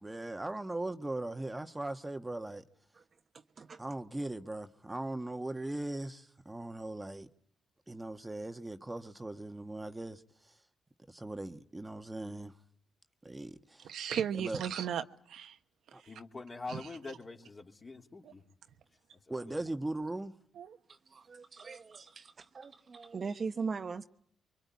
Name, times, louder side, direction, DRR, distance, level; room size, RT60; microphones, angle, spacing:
voice 1, 0.0-2.6 3.8-7.3 7.9-10.2 10.5-10.6 11.1-12.5 13.2-13.9 14.3-14.6 15.9-16.0 19.3-20.4, right 2 dB, 15° right, 1.3 m, -39 dB
voice 2, 13.8-15.6 16.7-16.8 18.2-18.3 20.6-20.8, right 8 dB, 75° right, 1.2 m, -36 dB
voice 3, 16.0-18.4 19.3-19.5, left 3 dB, 30° left, 3.3 m, -45 dB
voice 4, 20.9-24.0, right 5 dB, 45° right, 1.1 m, -40 dB
24.0 x 24.0 x 9.5 m
cardioid pair, 80°, 0 cm